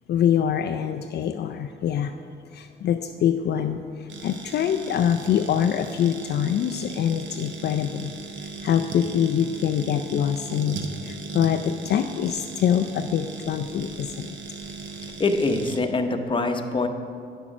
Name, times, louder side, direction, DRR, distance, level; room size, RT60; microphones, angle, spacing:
voice 1, 0.1-2.1 2.5-8.1 8.6-10.8 11.0-14.4, left 9 dB, 55° left, 6 dB, 0.4 m, -24 dB
sound 1, 4.1-15.8, right 4 dB, 70° right, 1.0 m, -38 dB
voice 2, 15.2-16.9, left 3 dB, 25° left, 5 dB, 0.8 m, -24 dB
8.9 x 6.1 x 6.0 m, 2.4 s
cardioid pair, 90°, 20 cm